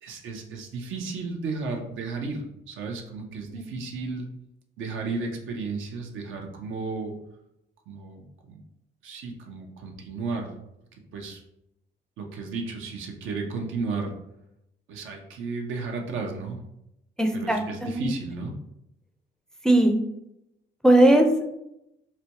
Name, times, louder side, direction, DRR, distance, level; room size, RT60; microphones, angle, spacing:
voice 1, 0.0-4.3 4.8-7.1 7.9-8.6 9.0-10.5 11.1-11.4 12.2-14.1 14.9-16.6 17.3-18.5, right 4 dB, 80° right, 2 dB, 0.7 m, -33 dB
voice 2, 17.2-18.1 19.6-19.9 20.8-21.3, right 1 dB, 5° left, 3 dB, 0.4 m, -19 dB
4.1 x 2.2 x 2.9 m, 0.83 s
cardioid pair, 90°, 20 cm